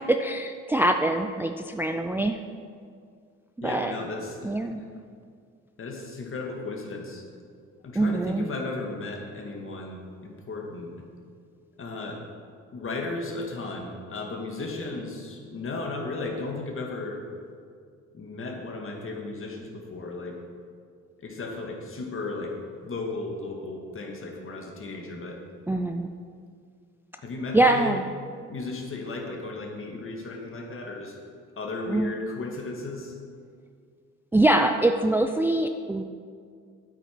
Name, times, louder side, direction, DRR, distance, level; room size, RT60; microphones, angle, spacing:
voice 1, 0.0-2.4 3.6-3.9 4.4-4.8 8.0-8.4 25.7-26.1 27.5-28.1 31.9-32.1 34.3-36.0, right 2 dB, 5° right, 6 dB, 0.4 m, -24 dB
voice 2, 3.6-4.5 5.8-7.2 7.8-10.9 11.8-12.2 12.7-17.2 18.1-20.4 21.2-22.6 22.8-25.4 27.2-28.0 28.5-31.1 31.6-33.1, left 3 dB, 45° left, 1 dB, 1.8 m, -35 dB
8.9 x 8.4 x 4.5 m, 2.2 s
cardioid pair, 90°, 30 cm